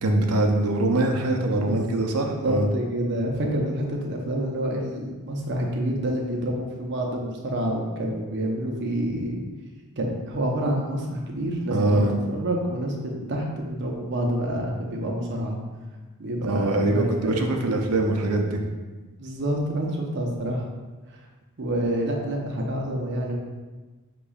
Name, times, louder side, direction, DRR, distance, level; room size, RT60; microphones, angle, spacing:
voice 1, 0.0-2.7 11.7-12.1 16.4-18.6, right 2 dB, 90° right, 3 dB, 0.6 m, -23 dB
voice 2, 2.3-9.4 10.0-15.6 16.2-17.5 19.2-20.7 21.1-21.2 21.6-23.4, right 1 dB, 50° right, 0 dB, 0.7 m, -28 dB
6.5 x 3.0 x 2.3 m, 1.3 s
head